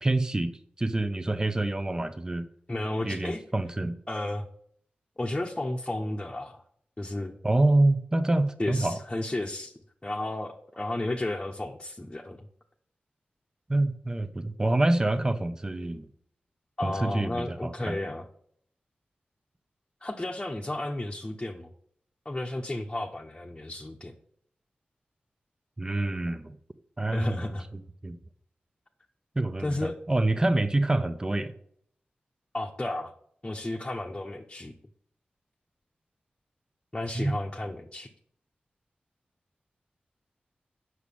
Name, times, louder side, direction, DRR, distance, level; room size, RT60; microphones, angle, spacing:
voice 1, 0.0-2.5 3.0-3.9 7.4-9.0 13.7-16.1 16.8-18.0 25.8-26.6 27.0-27.4 28.0-28.2 29.4-31.5 37.1-37.3, right 2 dB, 20° right, 9 dB, 0.8 m, -26 dB
voice 2, 2.7-3.4 4.1-4.5 5.2-6.6 7.0-7.4 8.6-9.7 10.0-12.5 16.8-18.3 20.0-21.7 22.2-24.1 27.1-27.7 29.6-30.0 32.5-33.1 33.4-34.7 36.9-38.1, left 1 dB, 20° left, 0 dB, 0.9 m, -33 dB
8.1 x 6.2 x 7.0 m, 0.65 s
wide cardioid pair, 85°, 3 cm